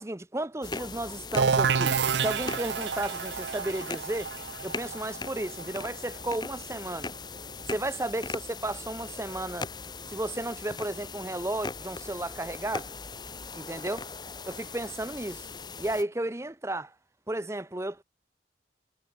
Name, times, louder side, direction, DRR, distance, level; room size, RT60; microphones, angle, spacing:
voice 1, 0.0-4.3 4.6-7.1 7.7-9.7 10.1-12.9 13.5-14.1 14.5-15.5 15.8-16.9 17.3-18.0, right 1 dB, 15° right, 0.7 m, -33 dB
sound 1, 0.6-16.0, left 4 dB, 25° left, 1.5 m, -40 dB
sound 2, 1.4-6.9, right 6 dB, 80° right, 0.6 m, -29 dB
head